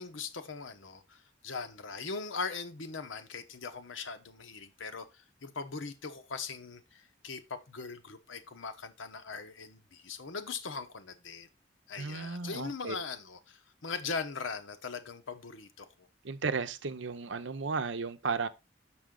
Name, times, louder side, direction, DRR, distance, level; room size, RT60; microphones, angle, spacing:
voice 1, 0.0-11.5 11.9-16.1, left 4 dB, 85° left, 1.0 m, -40 dB
voice 2, 12.0-13.0 16.2-18.5, right 4 dB, 75° right, 0.7 m, -34 dB
6.2 x 6.2 x 3.7 m
head